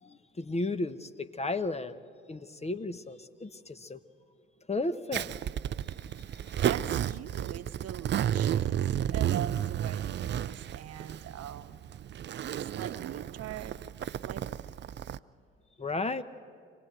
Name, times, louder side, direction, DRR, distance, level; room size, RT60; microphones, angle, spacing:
voice 1, 0.0-2.0 2.3-4.0 4.7-5.3 15.8-16.2, left 2 dB, 20° left, 1.0 m, -34 dB
Zipper (clothing), 5.1-15.2, right 10 dB, 35° right, 0.5 m, -32 dB
voice 2, 6.2-11.8 12.5-13.8 14.2-14.6, right 10 dB, 50° right, 1.0 m, -42 dB
25.5 x 17.5 x 8.1 m
hypercardioid pair, 50°, 32 cm